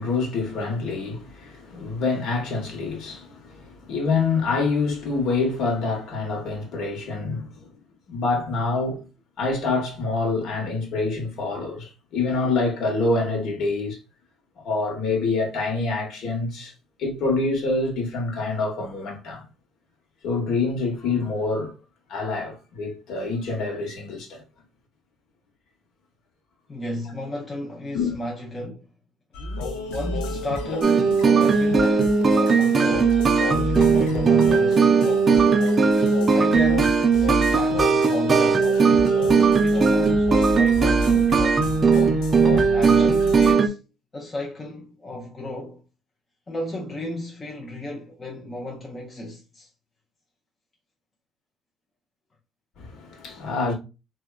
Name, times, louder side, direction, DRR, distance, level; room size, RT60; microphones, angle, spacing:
voice 1, 0.0-7.7 8.1-9.0 9.4-14.0 14.6-16.7 17.0-19.5 20.2-21.7 22.1-24.4 27.9-28.1 52.8-53.7, left 3 dB, 65° left, 1.0 m, -26 dB
voice 2, 26.7-28.8 29.9-32.0 32.5-35.0 36.3-38.7 39.6-41.5 42.5-43.8 44.1-45.8 46.5-49.7, left 1 dB, 25° left, 0.5 m, -34 dB
sound 1, 29.3-43.5, left 3 dB, 85° left, 0.5 m, -31 dB
sound 2, 30.8-43.7, right 5 dB, 35° right, 0.4 m, -18 dB
3.3 x 2.2 x 2.2 m
cardioid pair, 95°, 0 cm